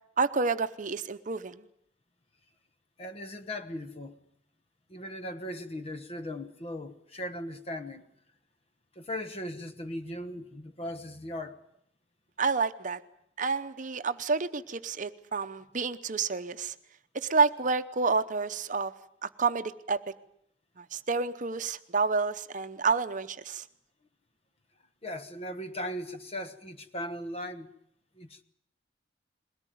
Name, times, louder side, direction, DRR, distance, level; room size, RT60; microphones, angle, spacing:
voice 1, 0.2-1.6 12.4-13.0 13.4-16.7 17.1-18.9 19.2-20.0 20.8-23.6, right 4 dB, 45° right, 0.8 m, -29 dB
voice 2, 3.0-4.2 4.9-8.0 8.9-11.6 25.0-27.7 28.2-28.4, left 1 dB, 35° left, 1.2 m, -38 dB
21.5 x 18.0 x 9.2 m
head